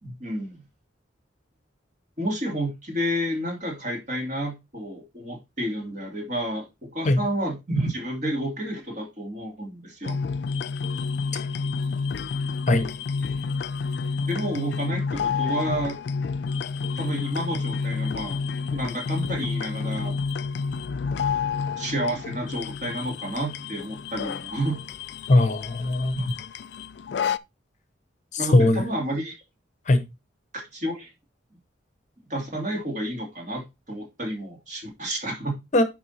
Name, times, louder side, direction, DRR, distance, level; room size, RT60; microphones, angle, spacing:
voice 1, 0.0-0.6 2.2-10.2 14.2-16.0 17.0-18.4 18.7-20.2 21.8-24.8 26.1-26.3 28.4-29.4 30.5-31.1 32.3-35.6, right 1 dB, 40° right, 2.5 m, -30 dB
sound 1, 10.0-27.4, left 5 dB, 60° left, 0.3 m, -29 dB
voice 2, 25.3-26.2 28.3-28.8 29.9-30.0 35.7-35.8, left 2 dB, 40° left, 0.8 m, -19 dB
10.0 x 3.7 x 4.2 m
head